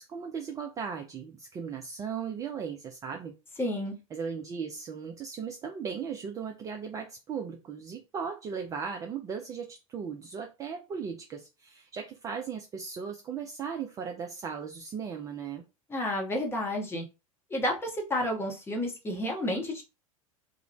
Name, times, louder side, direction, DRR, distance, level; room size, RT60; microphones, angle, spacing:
voice 1, 0.0-3.3 4.1-15.6, right 6 dB, 20° right, 0.3 m, -37 dB
voice 2, 3.6-4.0 15.9-17.0 17.5-19.8, left 1 dB, 15° left, 0.8 m, -31 dB
2.5 x 2.0 x 2.9 m
figure-of-eight pair, 80°, 18 cm